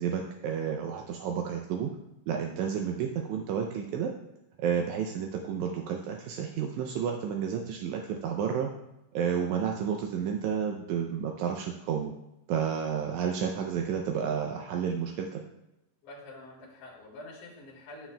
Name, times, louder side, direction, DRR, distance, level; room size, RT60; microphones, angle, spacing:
voice 1, 0.0-1.9 2.3-4.1 4.6-8.7 9.1-12.1 12.5-15.4, right 7 dB, 80° right, 2 dB, 1.7 m, -31 dB
voice 2, 16.0-18.1, left 2 dB, 90° left, -6 dB, 3.6 m, -47 dB
11.5 x 7.2 x 2.2 m, 0.90 s
omnidirectional pair, 3.9 m